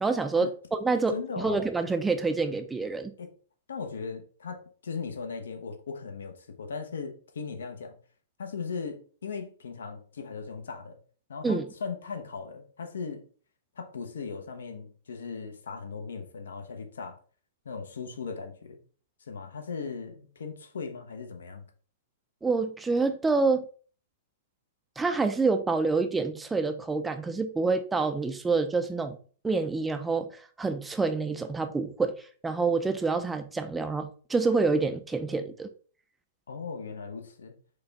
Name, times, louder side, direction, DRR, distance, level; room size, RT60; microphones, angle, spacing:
voice 1, 0.0-3.1 11.4-11.7 22.4-23.7 25.0-29.2 29.4-32.1 32.4-35.7, right 4 dB, 10° right, 0.4 m, -27 dB
voice 2, 1.1-1.6 3.2-3.3 3.7-8.0 8.4-11.0 11.3-13.2 13.8-17.2 17.6-18.8 19.2-21.6 36.5-37.5, left 5 dB, 75° left, 0.8 m, -38 dB
4.9 x 2.3 x 3.9 m
hypercardioid pair, 115°, 0 cm